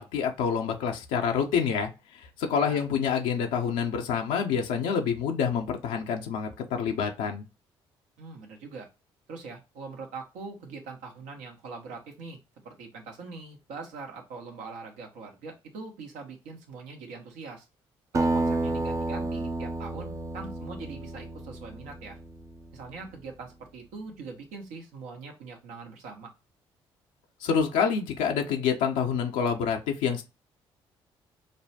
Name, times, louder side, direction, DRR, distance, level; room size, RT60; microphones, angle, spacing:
voice 1, 0.0-7.4 27.4-30.2, left 6 dB, 75° left, 0.6 m, -27 dB
voice 2, 8.2-8.9 9.3-12.4 12.6-17.7 18.1-22.2 22.7-26.3, right 4 dB, 75° right, 1.1 m, -42 dB
Acoustic guitar, 18.1-23.0, right 2 dB, 25° right, 0.5 m, -31 dB
5.2 x 2.2 x 2.7 m
hypercardioid pair, 50°, 13 cm